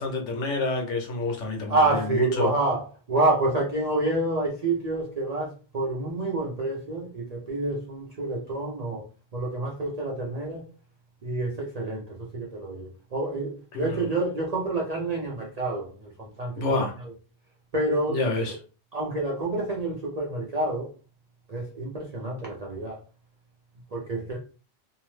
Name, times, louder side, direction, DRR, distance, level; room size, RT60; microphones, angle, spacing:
voice 1, 0.0-2.5 13.7-14.0 16.6-16.9 18.1-18.6, left 3 dB, 90° left, 1.1 m, -28 dB
voice 2, 1.7-9.0 9.3-10.7 11.2-16.9 17.7-18.6 18.9-20.9 21.5-23.0 23.9-24.4, right 2 dB, 45° right, 0.5 m, -28 dB
2.6 x 2.0 x 3.1 m
omnidirectional pair, 1.2 m